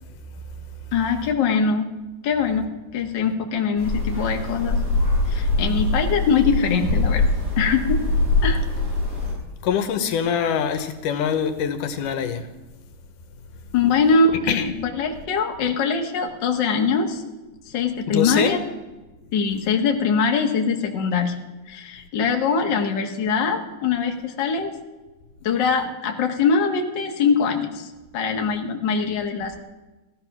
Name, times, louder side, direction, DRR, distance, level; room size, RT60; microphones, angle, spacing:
voice 1, 0.9-1.9 2.2-4.8 5.3-7.3 7.6-8.0 8.4-8.6 13.7-17.2 17.7-18.6 19.3-21.3 21.7-24.7 25.4-29.6, left 5 dB, 45° left, 2 dB, 1.7 m, -22 dB
sound 1, 3.8-9.3, left 2 dB, 30° right, 6.7 m, -23 dB
voice 2, 9.6-12.5 14.5-14.7 18.1-18.6, left 8 dB, 85° left, 9 dB, 2.6 m, -24 dB
16.5 x 13.5 x 6.0 m, 1.1 s
omnidirectional pair, 3.6 m